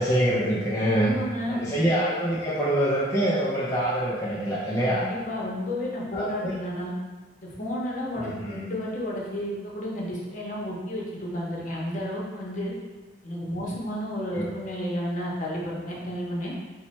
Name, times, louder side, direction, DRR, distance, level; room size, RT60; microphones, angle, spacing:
voice 1, 0.0-1.1 1.5-5.1 6.1-6.6 8.2-8.7 14.3-14.5, right 1 dB, 20° left, -7 dB, 0.4 m, -25 dB
voice 2, 0.9-1.9 4.9-6.9 7.4-12.7 13.2-16.5, equal, 45° left, -4 dB, 0.8 m, -32 dB
3.1 x 2.1 x 4.1 m, 1.3 s
head